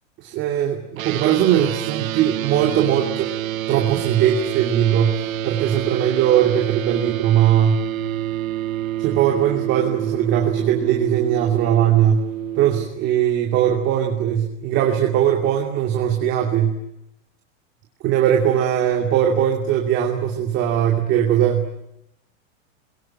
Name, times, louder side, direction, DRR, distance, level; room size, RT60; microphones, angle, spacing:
voice 1, 0.2-3.3 3.7-7.8 9.0-12.3 12.6-16.8 18.0-21.7, right 10 dB, 30° right, 1 dB, 2.7 m, -20 dB
sound 1, 1.0-12.8, right 13 dB, 90° right, 1.2 m, -28 dB
28.0 x 22.5 x 8.9 m, 0.83 s
supercardioid pair, 165°, 40 cm